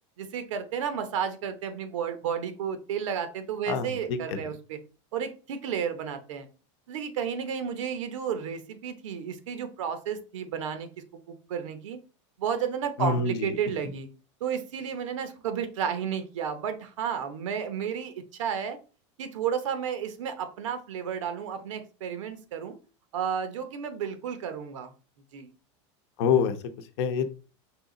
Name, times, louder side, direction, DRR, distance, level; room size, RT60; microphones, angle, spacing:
voice 1, 0.2-4.8 5.1-6.5 6.9-10.9 11.3-12.0 12.4-14.1 14.4-18.8 19.2-22.8 23.1-24.9 25.3-25.5, right 7 dB, 90° right, 9 dB, 0.9 m, -32 dB
voice 2, 3.7-4.4 13.0-13.5 26.2-27.3, left 6 dB, 65° left, 8 dB, 0.8 m, -27 dB
4.8 x 2.9 x 3.8 m, 0.36 s
supercardioid pair, 150°, 16 cm